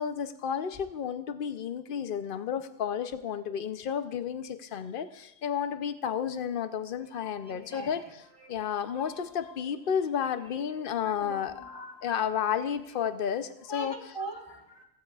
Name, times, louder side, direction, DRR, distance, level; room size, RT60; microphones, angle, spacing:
voice 1, 0.0-8.0 8.5-11.6 12.0-13.9, left 8 dB, 60° left, 10 dB, 0.9 m, -32 dB
voice 2, 7.2-7.9 8.4-8.5 9.0-9.3 11.0-12.1 13.7-14.8, right 1 dB, 25° left, 0 dB, 1.7 m, -42 dB
16.0 x 14.5 x 2.4 m, 0.88 s
omnidirectional pair, 1.1 m